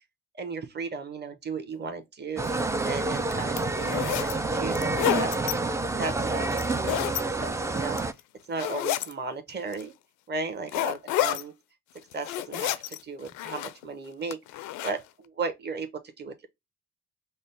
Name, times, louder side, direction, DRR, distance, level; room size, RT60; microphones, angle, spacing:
voice 1, 0.3-2.5 2.8-5.3 6.0-8.1 8.5-9.9 10.3-11.5 12.1-16.5, right 4 dB, 30° right, 1.1 m, -35 dB
sound 1, 2.4-2.6 3.2-4.3 4.7-5.5 6.5-7.2 7.8-8.2 8.6-9.1 9.7-9.8 10.7-11.4 12.0-13.0 13.3-13.8 14.3-14.9, left 15 dB, 65° left, 0.5 m, -29 dB
sound 2, 2.4-8.1, right 3 dB, 10° right, 0.4 m, -28 dB
5.4 x 2.0 x 3.3 m
hypercardioid pair, 50°, 31 cm